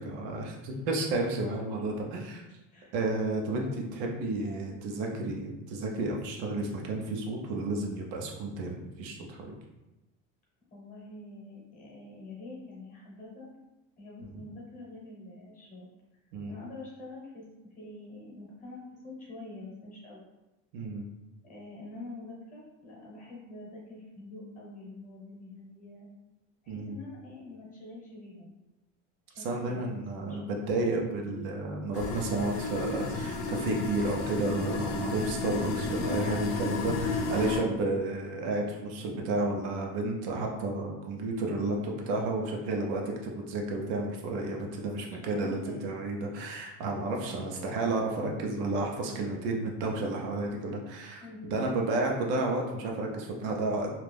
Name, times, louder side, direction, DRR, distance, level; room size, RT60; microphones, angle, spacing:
voice 1, 0.0-2.4 2.9-9.6 16.3-16.5 20.7-21.0 26.7-27.0 29.4-51.2 51.5-53.9, right 2 dB, 75° right, 0 dB, 0.7 m, -32 dB
voice 2, 4.4-5.2 10.7-13.5 14.0-15.9 16.5-17.5 17.7-20.3 21.4-26.1 26.6-28.5 29.3-30.5 37.8-38.1 45.0-45.9 47.0-47.4 51.2-51.8, left 2 dB, 25° left, -4 dB, 0.9 m, -46 dB
sound 1, 31.9-37.6, left 3 dB, 70° left, 0.6 m, -32 dB
2.6 x 2.4 x 3.4 m, 1.0 s
cardioid pair, 160°, 32 cm